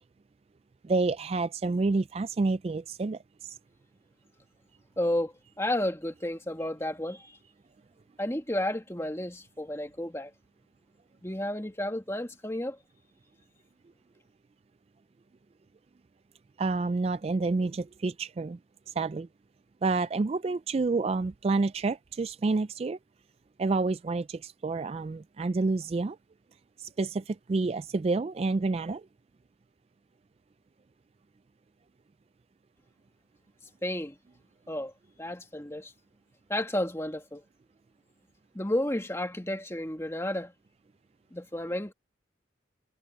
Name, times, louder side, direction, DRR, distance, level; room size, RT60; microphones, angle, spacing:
voice 1, 0.8-3.6 16.6-18.6 18.9-19.3 19.8-23.0 23.6-26.2 26.8-29.1, right 3 dB, 30° right, 0.3 m, -29 dB
voice 2, 5.0-7.4 8.2-10.3 11.2-12.8 33.8-34.2 34.7-34.9 35.2-35.9 36.5-37.4 38.5-40.5 41.3-41.9, left 1 dB, 15° left, 2.0 m, -32 dB
head